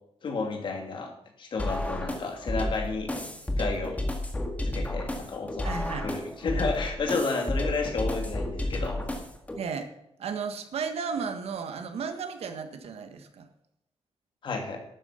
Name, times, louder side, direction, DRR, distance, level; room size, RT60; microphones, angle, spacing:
voice 1, 0.2-1.1 1.4-3.1 3.6-4.0 4.6-5.7 6.0-9.0 14.4-14.8, left 3 dB, 50° left, 2 dB, 2.6 m, -31 dB
sound 1, 1.6-9.6, left 1 dB, 15° left, 1.7 m, -31 dB
voice 2, 5.6-6.1 9.6-9.9 10.2-13.5, right 6 dB, 75° right, 7 dB, 1.6 m, -34 dB
12.0 x 9.3 x 5.7 m, 0.80 s
wide cardioid pair, 160°, 11 cm